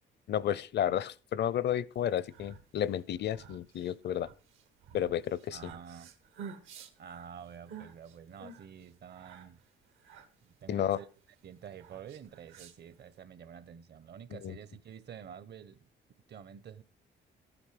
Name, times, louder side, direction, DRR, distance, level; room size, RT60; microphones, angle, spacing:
voice 1, 0.3-4.3 4.9-5.7 10.7-11.0 14.3-14.6, left 10 dB, 60° left, 0.6 m, -32 dB
sound 1, 2.0-13.2, right 6 dB, 85° right, 1.7 m, -52 dB
voice 2, 5.5-6.1 7.0-9.6 10.4-11.1 11.4-15.8 16.3-16.8, right 8 dB, 55° right, 0.9 m, -48 dB
13.5 x 8.9 x 4.9 m
cardioid pair, 90°, 20 cm